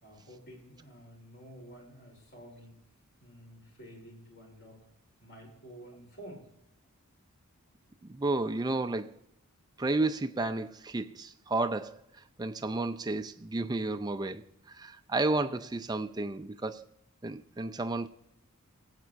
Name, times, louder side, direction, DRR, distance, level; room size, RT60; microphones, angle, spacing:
voice 1, 0.0-2.7 3.2-4.8 5.2-6.5, equal, 50° left, 3.2 m, -50 dB
voice 2, 8.0-9.1 9.8-12.0 12.4-14.4 14.7-16.9 17.2-18.1, right 2 dB, 20° right, 0.4 m, -32 dB
24.0 x 8.2 x 2.5 m
head